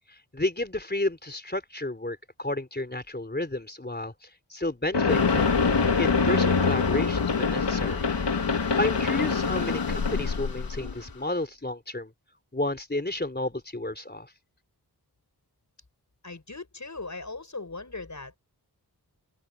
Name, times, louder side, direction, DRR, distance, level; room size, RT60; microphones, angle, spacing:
voice 1, 0.3-4.1 4.5-5.5 6.0-8.0 8.8-12.1 12.5-14.3, left 2 dB, 25° left, 3.7 m, -31 dB
sound 1, 4.9-11.0, left 5 dB, 80° left, 2.2 m, -25 dB
sound 2, 5.1-11.4, left 5 dB, 60° left, 1.6 m, -36 dB
voice 2, 16.2-18.4, left 3 dB, 45° left, 6.8 m, -39 dB
open air
cardioid pair, 50°, 41 cm